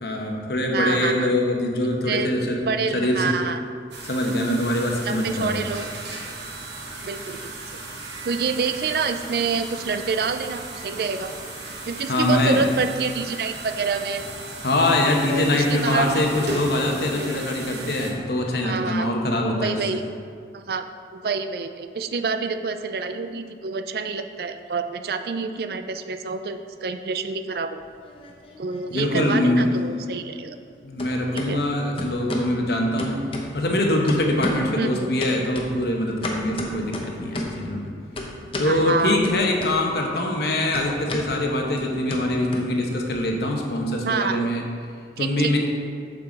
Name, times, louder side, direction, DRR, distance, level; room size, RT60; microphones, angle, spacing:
voice 1, 0.0-2.6 2.9-3.3 4.0-5.7 12.1-12.6 14.6-20.0 28.9-29.7 30.0-30.1 30.8-33.2 33.5-37.9 38.6-44.7 45.2-45.6, left 1 dB, 65° left, 1 dB, 1.0 m, -23 dB
voice 2, 0.7-1.3 2.1-2.3 2.6-3.6 5.0-5.9 7.0-7.8 8.2-11.3 11.8-14.2 15.0-16.2 17.2-17.3 18.6-19.1 19.6-20.0 20.5-27.8 28.6-30.6 31.3-31.6 34.8-35.1 38.6-39.2 44.0-44.4 45.2-45.6, right 5 dB, 60° right, 8 dB, 0.4 m, -27 dB
sound 1, 3.9-18.1, right 2 dB, 75° right, 1.1 m, -36 dB
sound 2, 27.8-28.8 29.1-30.7 31.0-31.5 32.0-32.5 33.0-33.8 34.1-34.8 35.2-37.6 38.2-38.8 39.2-40.1 40.3-43.2, left 1 dB, 30° left, 0.8 m, -33 dB
7.0 x 6.8 x 3.9 m, 2.2 s
head